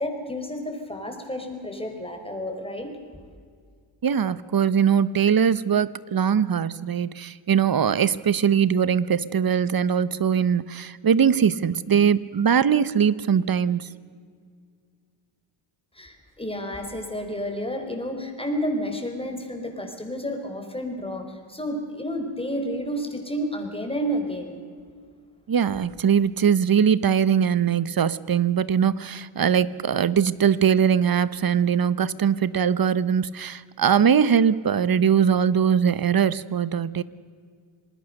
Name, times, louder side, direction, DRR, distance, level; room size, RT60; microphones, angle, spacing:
voice 1, 0.0-2.9 16.0-24.5, equal, 10° left, 4 dB, 4.6 m, -30 dB
voice 2, 4.0-13.9 25.5-37.0, right 7 dB, 45° right, 18 dB, 0.9 m, -21 dB
27.0 x 20.0 x 6.6 m, 2.1 s
cardioid pair, 90°, 49 cm